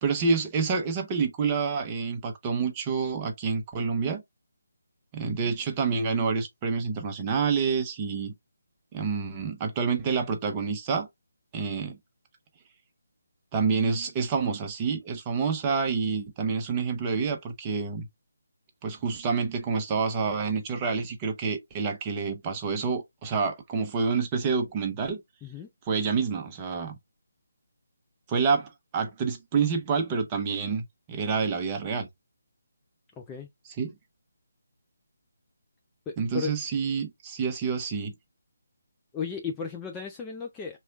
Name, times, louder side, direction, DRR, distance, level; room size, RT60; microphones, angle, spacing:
voice 1, 0.0-4.2 5.1-8.3 8.9-11.1 11.5-12.0 13.5-18.1 18.8-25.2 25.9-27.0 28.3-32.1 33.8-33.9 36.2-38.1, right 5 dB, 20° right, 0.8 m, -28 dB
voice 2, 33.2-33.5 36.1-36.5 39.1-40.8, left 6 dB, 10° left, 0.4 m, -35 dB
4.2 x 3.1 x 2.3 m
figure-of-eight pair, 150°, 0 cm